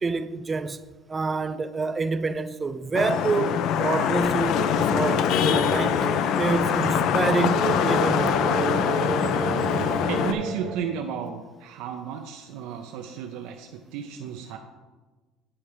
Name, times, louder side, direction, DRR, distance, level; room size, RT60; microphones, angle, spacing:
voice 1, 0.0-0.8 1.1-4.7 4.9-6.0 6.4-8.5, right 4 dB, 20° right, 0.3 m, -27 dB
Vehicle horn car horn honking / Traffic noise roadway noise, 2.9-10.3, left 8 dB, 65° left, 0.4 m, -23 dB
sound 1, 4.5-10.8, right 5 dB, 40° right, 1.0 m, -31 dB
voice 2, 10.1-14.6, right 7 dB, 75° right, 0.5 m, -34 dB
8.7 x 4.4 x 4.9 m
cardioid pair, 120°, 0 cm